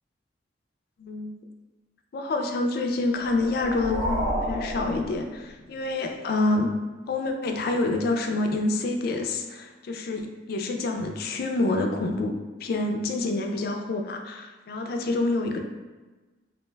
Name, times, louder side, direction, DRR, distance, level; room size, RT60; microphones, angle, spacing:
voice 1, 1.0-1.3 2.1-6.7 7.1-10.2 10.5-12.3 12.6-15.6, left 2 dB, 55° left, 4 dB, 0.3 m, -27 dB
sound 1, 3.2-5.8, equal, 40° right, 0.6 m, -31 dB
2.4 x 2.1 x 3.2 m, 1.2 s
head